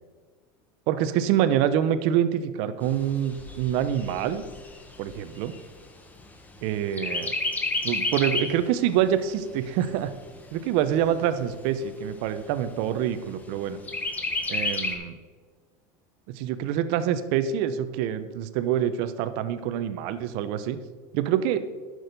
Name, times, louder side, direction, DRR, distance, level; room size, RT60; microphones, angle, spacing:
voice 1, 0.9-4.4 5.0-5.5 6.6-7.3 7.8-10.1 10.5-13.8 14.5-15.2 16.3-20.8 21.1-21.7, right 10 dB, 60° right, 12 dB, 0.8 m, -26 dB
Chirp tweet, 2.8-6.6 7.0-8.6 9.1-9.2 9.5-10.5 11.1-11.2 11.5-11.6 12.1-12.6 13.9-14.9, left 2 dB, 15° left, 1.2 m, -30 dB
11.0 x 6.3 x 5.2 m, 1.5 s
supercardioid pair, 135°, 11 cm